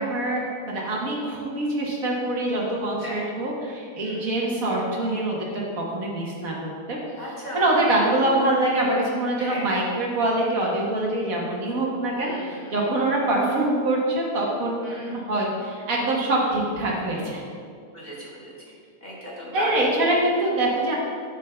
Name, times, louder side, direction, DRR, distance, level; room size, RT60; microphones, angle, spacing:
voice 1, 0.0-7.0 7.5-17.4 19.5-20.9, right 1 dB, 70° right, -3 dB, 1.6 m, -24 dB
voice 2, 7.2-7.7 9.4-9.7 12.2-12.8 14.8-15.2 17.9-18.5 19.0-19.8, left 1 dB, 30° left, -6 dB, 1.4 m, -36 dB
11.0 x 5.3 x 2.3 m, 2.2 s
omnidirectional pair, 1.6 m